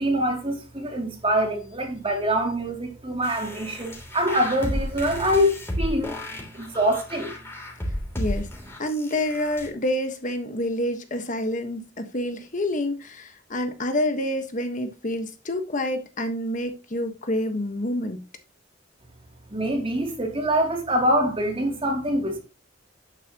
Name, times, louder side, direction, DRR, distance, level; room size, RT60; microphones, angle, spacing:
voice 1, 0.0-7.3 19.5-22.4, equal, 30° right, 2.8 m, -25 dB
sound 1, 3.2-9.7, equal, 15° left, 3.2 m, -33 dB
voice 2, 8.2-8.5 8.8-18.2, left 1 dB, 45° left, 1.4 m, -28 dB
11.0 x 9.0 x 3.0 m
head